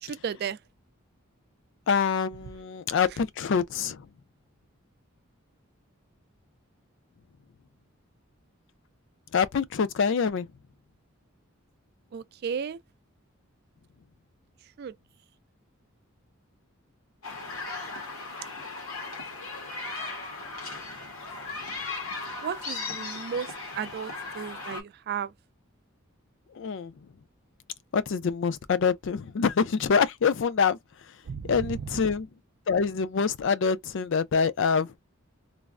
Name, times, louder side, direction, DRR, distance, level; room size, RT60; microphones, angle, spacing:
voice 1, 0.0-0.6 12.1-12.8 14.8-14.9 22.4-25.3 31.3-32.0, right 7 dB, 50° right, 0.3 m, -34 dB
voice 2, 1.9-4.1 9.3-10.5 26.5-26.9 27.9-30.8 31.5-32.3 32.7-35.0, left 6 dB, 60° left, 0.4 m, -25 dB
sound 1, 17.2-24.8, left 3 dB, 85° left, 1.1 m, -37 dB
3.3 x 2.0 x 2.4 m
head